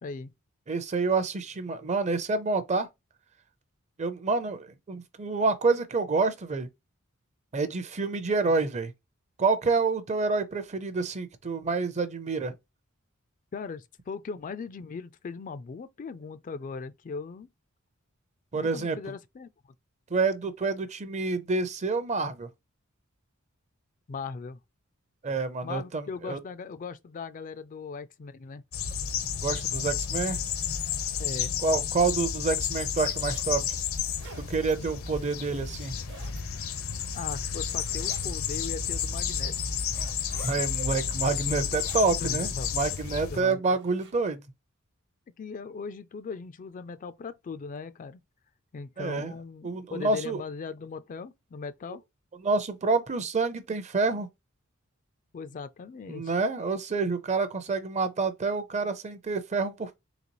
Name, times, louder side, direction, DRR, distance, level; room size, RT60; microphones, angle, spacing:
voice 1, 0.0-0.3 13.5-17.5 18.5-19.5 24.1-24.6 25.6-28.6 31.2-31.6 37.1-39.6 42.2-42.7 43.3-43.8 45.4-48.2 48.7-52.0 55.3-56.3, left 5 dB, 40° left, 0.3 m, -39 dB
voice 2, 0.7-2.9 4.0-6.7 7.5-8.9 9.4-12.6 18.5-19.0 20.1-22.5 25.2-26.4 29.4-30.4 31.6-33.8 34.5-35.9 40.4-44.4 49.0-49.3 49.6-50.4 52.4-54.3 56.1-60.0, right 4 dB, 35° right, 0.5 m, -28 dB
sound 1, 28.7-43.4, left 7 dB, 75° left, 0.7 m, -31 dB
sound 2, 31.6-31.8 32.4-33.5 33.9-34.7 35.7-36.4 37.0-37.4 37.8-38.3 38.9-39.0 39.9-40.6 41.2-42.2 42.5-43.0 43.5-44.1, right 5 dB, 55° right, 1.0 m, -49 dB
4.0 x 3.3 x 2.9 m
head